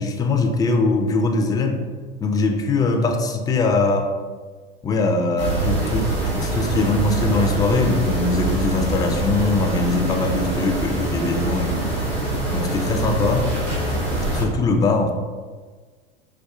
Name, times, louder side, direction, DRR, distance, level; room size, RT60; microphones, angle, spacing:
voice 1, 0.0-1.8 2.2-4.1 4.8-6.1 6.4-11.9 12.5-13.5 14.3-15.1, left 3 dB, 15° left, 4 dB, 0.4 m, -21 dB
sound 1, 5.4-14.4, right 2 dB, 85° right, 1.0 m, -24 dB
5.5 x 2.3 x 2.3 m, 1.5 s
hypercardioid pair, 85°, 29 cm